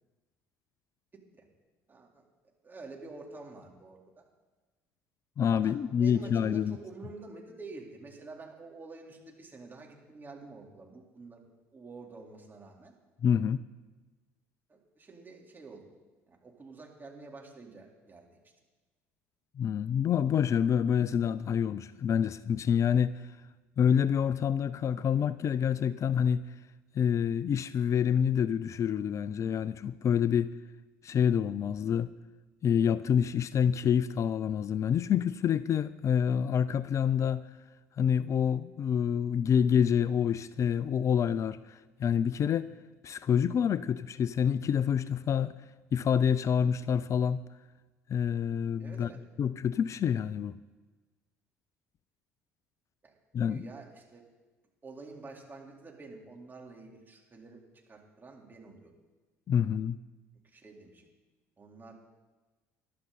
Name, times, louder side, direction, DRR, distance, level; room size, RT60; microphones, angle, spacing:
voice 1, 1.1-1.5 1.9-2.2 2.6-4.2 5.6-11.4 11.7-12.9 14.7-15.8 16.3-18.3 48.8-49.2 53.0-53.1 53.5-54.2 54.8-57.6 57.9-58.9 60.4-61.1 61.6-62.0, right 3 dB, 25° right, 4.2 m, -48 dB
voice 2, 5.4-6.8 13.2-13.6 19.6-23.3 23.8-26.4 26.9-30.5 31.0-32.1 32.6-37.4 38.0-42.7 43.0-45.6 45.9-47.4 48.1-49.1 49.4-50.5 53.3-53.7 59.5-60.0, left 8 dB, 40° left, 0.5 m, -27 dB
20.5 x 12.0 x 4.3 m
hypercardioid pair, 60°, 8 cm